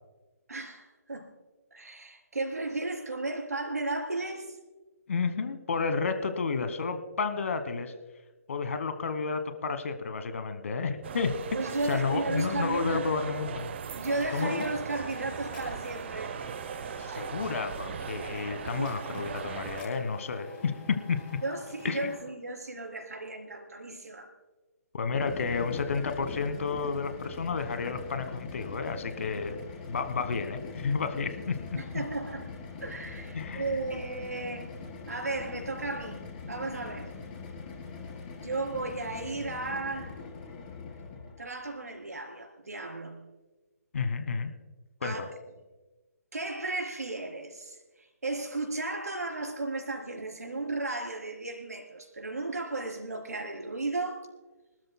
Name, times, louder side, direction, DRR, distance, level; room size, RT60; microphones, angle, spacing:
voice 1, 0.5-1.3 1.7-4.6 11.5-13.0 13.9-16.3 18.8-19.3 21.4-24.3 31.8-32.5 32.8-34.7 35.1-37.1 38.3-40.2 41.4-43.3 45.0-45.2 46.3-54.3, right 2 dB, 75° right, 2 dB, 3.8 m, -34 dB
voice 2, 5.1-7.9 8.5-11.4 11.8-13.8 14.3-14.6 17.0-21.2 21.8-22.1 24.9-29.6 29.9-31.6 33.3-33.7 43.9-44.5 45.0-45.3, left 5 dB, 55° left, 10 dB, 1.3 m, -31 dB
sound 1, 11.0-19.8, right 7 dB, 45° right, 0.6 m, -38 dB
sound 2, 14.0-22.2, left 4 dB, 15° left, 3.5 m, -49 dB
sound 3, 25.0-41.5, left 4 dB, 30° left, 3.7 m, -42 dB
25.0 x 13.0 x 2.2 m, 1.2 s
figure-of-eight pair, 140°, 9 cm